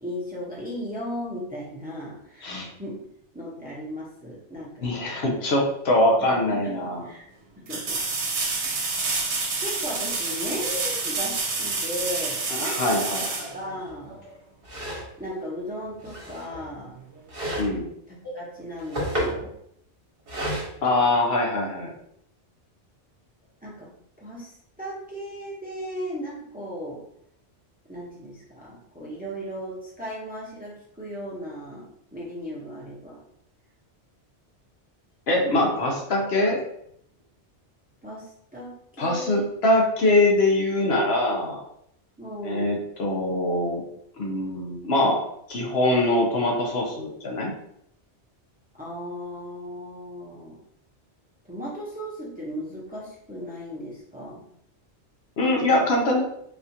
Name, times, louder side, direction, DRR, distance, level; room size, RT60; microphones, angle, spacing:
voice 1, 0.0-2.5 2.8-3.0 3.3-5.2 6.2-7.2 7.6-8.0 8.6-9.0 9.6-12.8 13.2-14.2 15.2-16.9 18.1-19.5 23.6-23.9 24.2-27.0 27.9-33.2 38.0-39.4 42.2-42.8 48.7-50.6 51.5-54.4, equal, 10° right, -5 dB, 0.7 m, -36 dB
voice 2, 4.8-7.0 12.5-13.5 17.6-17.9 20.8-21.9 35.3-36.6 39.0-41.6 42.4-43.8 44.2-45.2 45.5-47.5 55.4-56.2, left 1 dB, 65° left, -1 dB, 0.9 m, -23 dB
sound 1, 6.3-6.4 7.7-14.3 17.1-17.2, right 3 dB, 70° right, 1.1 m, -28 dB
sound 2, 13.9-14.0 14.6-15.1 16.0-16.7 17.3-17.7 18.6-19.4 20.3-20.7, equal, 55° right, 1.2 m, -30 dB
4.2 x 2.4 x 2.7 m, 0.72 s
omnidirectional pair, 1.2 m